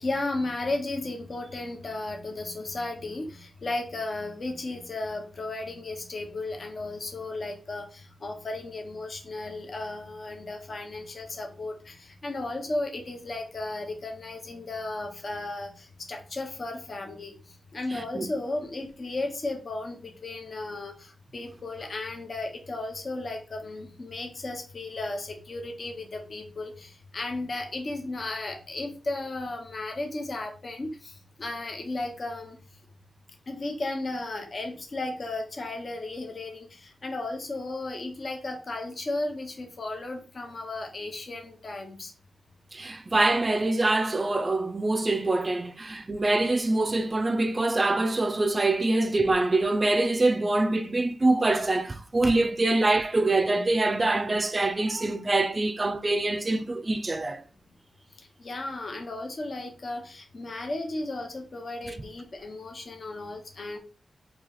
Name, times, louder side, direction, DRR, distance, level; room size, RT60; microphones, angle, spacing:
voice 1, 0.0-17.4 17.7-32.6 33.5-42.1 58.4-63.8, left 2 dB, 50° left, 0.8 m, -34 dB
voice 2, 17.9-18.3 42.7-57.4 61.8-62.0, right 2 dB, 30° right, 0.4 m, -25 dB
3.1 x 2.8 x 3.9 m
wide cardioid pair, 110°, 0 cm